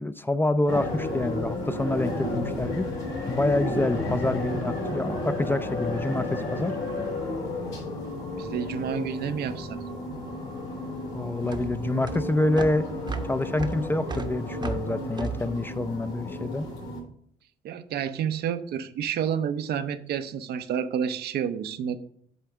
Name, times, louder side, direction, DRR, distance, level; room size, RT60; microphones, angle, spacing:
voice 1, 0.0-2.9 3.3-6.7 11.1-12.9 13.3-16.7, left 2 dB, 10° left, 0.5 m, -27 dB
sound 1, 0.7-17.0, left 1 dB, 90° left, 3.5 m, -32 dB
voice 2, 8.4-9.8 17.6-22.0, right 8 dB, 70° right, 0.6 m, -29 dB
sound 2, 10.1-16.7, right 4 dB, 25° right, 0.8 m, -37 dB
8.1 x 3.5 x 5.8 m
supercardioid pair, 70°, 17 cm